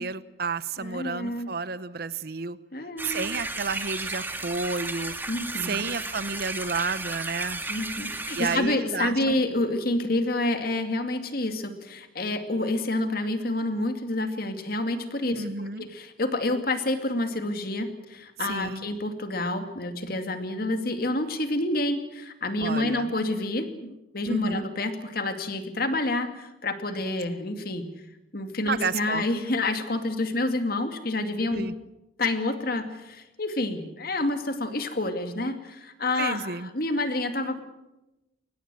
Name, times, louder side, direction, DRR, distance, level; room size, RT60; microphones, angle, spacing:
voice 1, 0.0-2.6 3.0-5.1 5.6-7.6 8.4-9.4 15.4-15.9 18.5-18.8 22.6-23.1 24.3-24.6 28.7-29.2 31.5-31.7 36.2-36.7, right 4 dB, 55° right, 16 dB, 0.8 m, -31 dB
voice 2, 0.8-1.5 2.7-3.3 5.3-5.8 7.7-15.4 15.8-27.9 28.3-31.7 32.2-37.6, left 2 dB, 55° left, 7 dB, 2.4 m, -28 dB
sound 1, 3.0-8.6, right 2 dB, 10° right, 2.0 m, -34 dB
22.5 x 19.5 x 7.7 m, 0.97 s
head